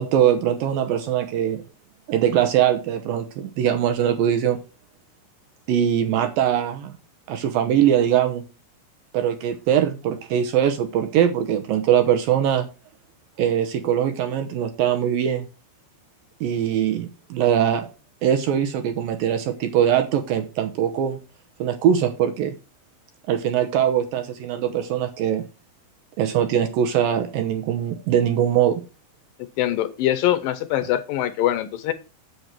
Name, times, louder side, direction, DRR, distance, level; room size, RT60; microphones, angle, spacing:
voice 1, 0.0-1.6 2.1-4.6 5.7-7.0 7.3-8.4 9.1-12.7 13.4-15.5 16.4-17.9 18.2-21.2 21.6-22.6 23.3-25.4 26.2-28.8, right 9 dB, 75° right, 2.3 m, -21 dB
voice 2, 29.6-31.9, left 12 dB, 80° left, 2.1 m, -23 dB
8.1 x 7.9 x 4.5 m
omnidirectional pair, 4.7 m